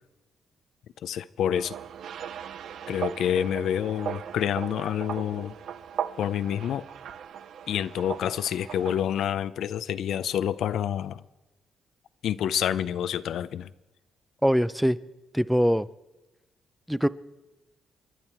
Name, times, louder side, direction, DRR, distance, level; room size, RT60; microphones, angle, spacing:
voice 1, 1.0-1.7 2.9-5.5 6.2-6.9 7.7-11.2 12.2-13.7, left 9 dB, 75° left, 0.5 m, -28 dB
sound 1, 1.5-9.0, right 8 dB, 70° right, 0.6 m, -38 dB
voice 2, 14.4-15.0 15.3-15.9 16.9-17.1, equal, ahead, 0.5 m, -22 dB
29.5 x 11.0 x 4.5 m
cardioid pair, 90°, 0 cm